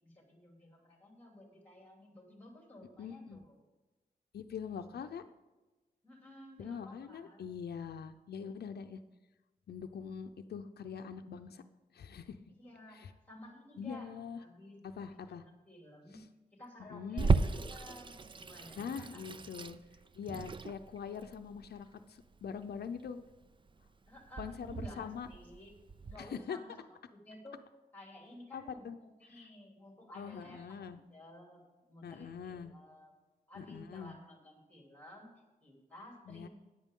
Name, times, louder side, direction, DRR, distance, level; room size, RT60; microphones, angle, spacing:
voice 1, 0.0-3.6 6.0-7.5 12.5-14.1 14.4-19.2 24.1-25.7 26.1-27.6 27.9-33.1 33.5-36.5, left 1 dB, 10° left, 0 dB, 3.0 m, -54 dB
voice 2, 3.0-3.4 4.3-5.2 6.6-9.0 9.7-11.6 11.9-12.4 12.9-13.1 13.8-14.4 14.8-15.4 16.1-16.2 16.9-17.3 18.8-19.8 20.1-23.2 24.4-25.3 26.2-26.6 28.5-29.0 30.2-31.0 32.0-32.7 33.5-34.2 36.3-36.5, left 6 dB, 85° left, 8 dB, 0.6 m, -43 dB
Water tap faucet / Sink (filling or washing), 17.2-26.2, right 4 dB, 30° right, 0.4 m, -36 dB
13.5 x 9.8 x 3.7 m, 1.2 s
wide cardioid pair, 155°, 16 cm